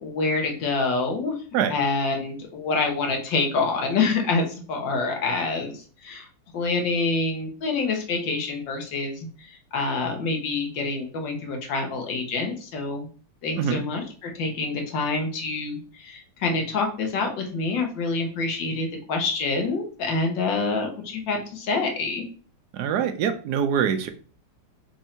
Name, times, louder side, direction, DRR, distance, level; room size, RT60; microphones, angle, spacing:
voice 1, 0.0-1.4 1.7-6.3 6.5-13.1 13.4-22.3, left 3 dB, 75° left, 2 dB, 1.7 m, -27 dB
voice 2, 22.7-24.1, right 8 dB, 70° right, 8 dB, 1.0 m, -24 dB
4.4 x 2.6 x 4.3 m, 0.40 s
omnidirectional pair, 2.0 m